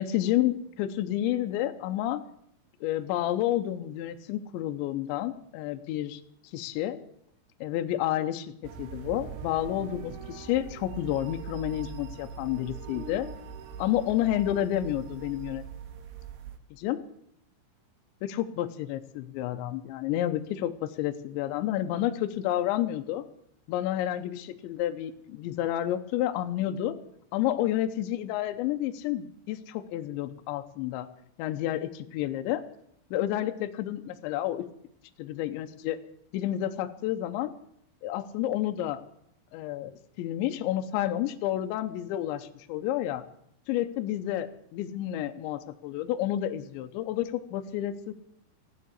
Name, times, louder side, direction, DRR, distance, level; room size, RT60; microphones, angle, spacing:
voice 1, 0.0-2.2 2.8-6.2 6.5-7.0 7.6-13.3 13.8-15.7 16.8-17.0 18.2-23.3 23.7-27.0 27.3-31.1 31.4-32.6 33.1-34.7 35.2-36.0 36.3-37.5 38.0-39.0 39.5-43.2 43.7-48.1, left 12 dB, 80° left, 7 dB, 2.8 m, -30 dB
sound 1, 8.6-16.6, right 7 dB, 70° right, 2.8 m, -42 dB
15.0 x 10.5 x 8.1 m, 0.73 s
omnidirectional pair, 5.9 m